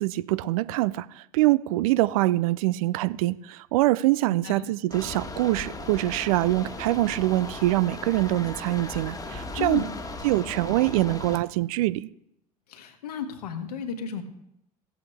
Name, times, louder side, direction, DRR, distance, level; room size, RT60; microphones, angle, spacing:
voice 1, 0.0-9.8 10.2-12.1, right 17 dB, 60° right, 0.5 m, -24 dB
sound 1, 4.9-11.4, left 2 dB, 15° left, 1.5 m, -37 dB
voice 2, 9.6-9.9 12.7-14.2, left 6 dB, 70° left, 1.6 m, -33 dB
16.0 x 8.5 x 3.3 m
figure-of-eight pair, 70°, 21 cm